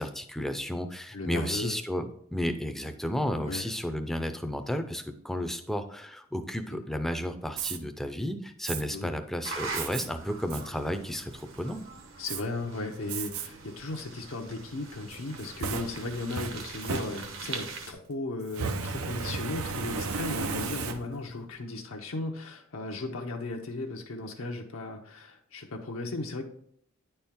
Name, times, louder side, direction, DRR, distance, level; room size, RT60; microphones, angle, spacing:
voice 1, 0.0-11.9, equal, ahead, 6 dB, 0.5 m, -33 dB
voice 2, 1.1-1.7 3.5-3.7 6.7-6.8 8.9-9.2 12.2-26.5, left 2 dB, 70° left, 1 dB, 0.7 m, -36 dB
Fire, 7.5-7.8 8.6-8.8 9.7-10.1 10.5-10.6 11.1-11.6 12.3-12.4 13.1-13.5 13.9-14.0 15.1-17.6 18.5-21.3, right 4 dB, 85° right, 0.6 m, -34 dB
sound 1, 9.4-17.9, right 4 dB, 60° right, 1.1 m, -42 dB
9.7 x 4.4 x 3.6 m, 0.67 s
head